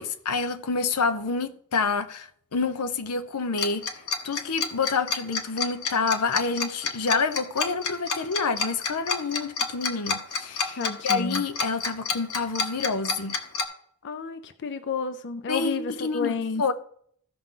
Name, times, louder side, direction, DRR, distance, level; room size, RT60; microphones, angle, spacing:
voice 1, 0.0-3.8 4.2-13.4 15.5-16.7, left 4 dB, 90° left, 0.7 m, -28 dB
Tick-tock, 3.6-13.6, left 5 dB, 70° left, 1.1 m, -28 dB
voice 2, 10.8-11.4 14.0-16.7, left 4 dB, 55° left, 0.5 m, -31 dB
15.0 x 5.8 x 3.8 m
head